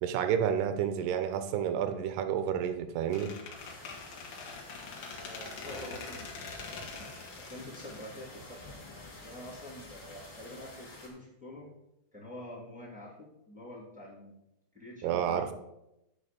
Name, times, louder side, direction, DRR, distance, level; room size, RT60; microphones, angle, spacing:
voice 1, 0.0-3.3 15.0-15.5, right 9 dB, 80° right, 9 dB, 2.3 m, -30 dB
Squeak, 3.1-8.9, left 4 dB, 65° left, 2.1 m, -44 dB
sound 1, 3.5-11.1, left 2 dB, 35° left, 3.5 m, -49 dB
voice 2, 5.1-6.3 7.0-7.1 7.4-11.7 12.1-14.3 14.7-15.5, left 1 dB, 10° right, -4 dB, 0.4 m, -46 dB
10.0 x 4.8 x 6.8 m, 0.88 s
omnidirectional pair, 5.6 m